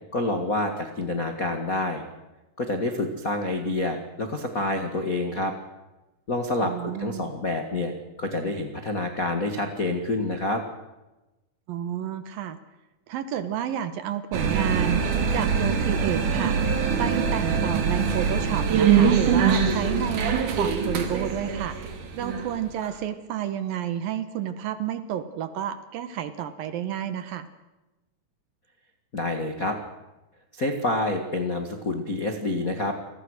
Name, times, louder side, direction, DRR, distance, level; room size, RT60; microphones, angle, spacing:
voice 1, 0.1-2.0 2.6-5.5 6.3-7.9 8.2-10.6 29.1-29.8 30.5-32.9, left 2 dB, 65° left, 4 dB, 0.8 m, -27 dB
voice 2, 6.6-7.3 11.7-12.6 13.1-16.6 17.0-21.8 22.2-27.5, right 10 dB, 70° right, 12 dB, 2.4 m, -30 dB
sound 1, 14.3-23.0, right 6 dB, 55° right, 3.3 m, -23 dB
29.0 x 20.0 x 6.5 m, 1.0 s
omnidirectional pair, 4.9 m